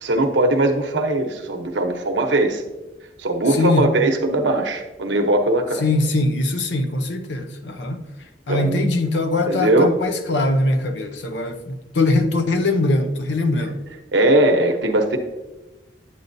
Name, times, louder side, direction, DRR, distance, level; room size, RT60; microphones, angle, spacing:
voice 1, 0.0-2.6 3.2-5.9 8.5-8.9 9.5-10.0 13.5-13.7 14.1-15.2, right 2 dB, 85° right, 0.9 m, -20 dB
voice 2, 3.5-3.9 5.8-8.0 8.5-13.7, left 2 dB, 85° left, 0.8 m, -21 dB
9.3 x 8.3 x 2.7 m
head